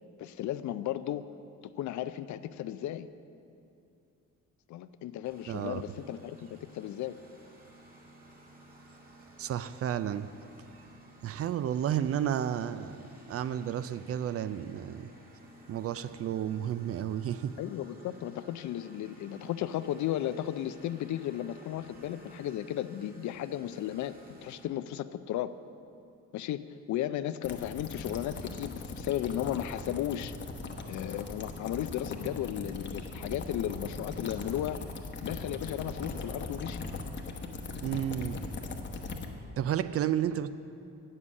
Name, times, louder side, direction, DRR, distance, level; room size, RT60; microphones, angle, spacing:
voice 1, 0.2-1.3 1.6-3.1 4.7-7.2 17.6-25.5 26.3-30.3 30.9-34.8 35.2-36.9, left 12 dB, 70° left, 13 dB, 0.5 m, -35 dB
Engine, 5.2-24.6, right 1 dB, 30° right, 1.8 m, -55 dB
voice 2, 5.5-5.8 9.4-10.3 11.2-15.1 15.7-17.6 37.8-38.5 39.6-40.5, right 10 dB, 50° right, 14 dB, 0.4 m, -32 dB
sound 1, 27.4-39.3, left 3 dB, 40° left, 1.0 m, -39 dB
8.3 x 7.3 x 7.4 m, 2.6 s
cardioid pair, 90°, 30 cm